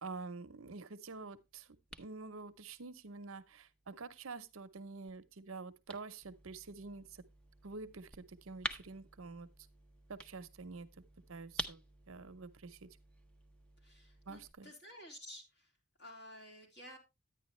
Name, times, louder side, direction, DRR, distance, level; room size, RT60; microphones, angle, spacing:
voice 1, 0.0-1.7 2.0-7.2 7.6-9.5 10.1-10.9 11.3-11.8 12.1-12.9 14.3-14.7, right 3 dB, 65° right, 0.8 m, -47 dB
sound 1, 1.0-14.5, right 1 dB, 5° left, 0.6 m, -50 dB
voice 2, 13.8-15.7 16.0-17.0, left 1 dB, 50° left, 3.7 m, -53 dB
10.0 x 9.6 x 3.1 m
head